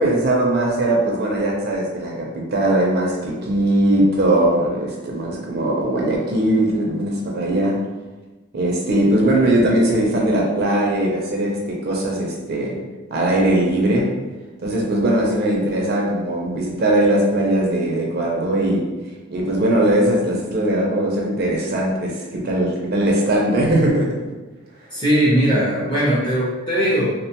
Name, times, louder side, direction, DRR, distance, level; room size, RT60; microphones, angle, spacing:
voice 1, 0.0-7.8 8.5-12.8 13.1-14.1 14.6-18.8 19.3-24.1, right 1 dB, 50° right, -2 dB, 0.4 m, -20 dB
voice 2, 24.9-27.1, right 1 dB, 20° left, -7 dB, 0.6 m, -19 dB
2.4 x 2.1 x 2.8 m, 1.2 s
head